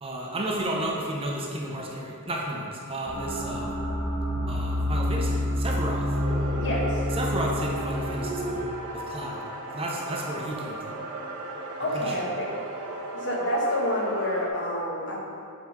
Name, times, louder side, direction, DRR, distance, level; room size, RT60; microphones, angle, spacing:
voice 1, 0.0-3.7 4.5-6.1 7.2-8.6 8.9-9.4 9.7-10.9 11.9-12.2, right 1 dB, 25° right, -2 dB, 0.7 m, -32 dB
sound 1, 3.1-8.6, left 1 dB, 15° left, 0.8 m, -28 dB
sound 2, 6.1-14.5, right 1 dB, 75° right, 0.7 m, -36 dB
voice 2, 6.6-7.0 11.8-12.6 13.1-15.2, equal, 55° left, -3 dB, 1.1 m, -28 dB
7.5 x 3.8 x 3.6 m, 2.8 s
head